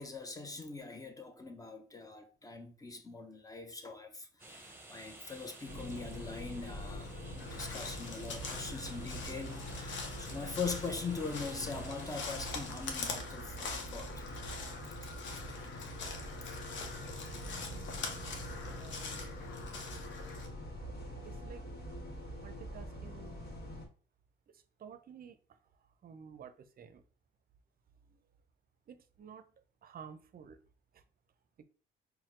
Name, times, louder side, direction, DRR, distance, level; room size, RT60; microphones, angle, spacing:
voice 1, 0.0-14.3 16.4-16.6, left 4 dB, 20° left, 0.8 m, -42 dB
sound 1, 4.4-12.9, right 1 dB, 10° right, 1.0 m, -54 dB
sound 2, 5.6-23.9, equal, 55° left, 1.4 m, -44 dB
Crow, 7.4-20.5, left 4 dB, 70° left, 0.9 m, -44 dB
voice 2, 17.3-19.4 21.2-21.7 22.4-23.4 24.5-27.0 28.1-28.2 28.9-29.5 29.8-30.6 30.9-31.0 31.6-31.7, right 7 dB, 50° right, 0.6 m, -53 dB
4.3 x 2.2 x 3.7 m
cardioid pair, 90°, 20 cm